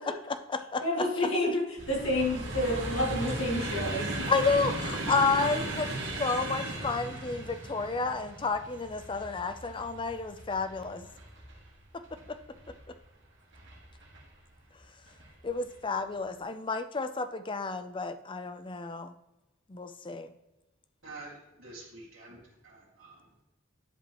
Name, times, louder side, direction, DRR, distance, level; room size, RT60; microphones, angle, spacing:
voice 1, 0.3-0.8 1.2-1.3 4.3-5.9 6.2-11.1 12.3-12.4 15.4-19.1 19.7-20.3, left 4 dB, 25° left, 11 dB, 0.5 m, -31 dB
voice 2, 0.8-4.1, left 1 dB, 75° left, -4 dB, 2.8 m, -29 dB
sound 1, 1.8-12.9 13.5-14.2 15.1-15.3 15.6-15.7, right 2 dB, 60° right, 1.9 m, -37 dB
voice 3, 21.0-23.3, right 2 dB, 90° right, -10 dB, 2.3 m, -48 dB
11.0 x 5.2 x 3.0 m, 1.0 s
head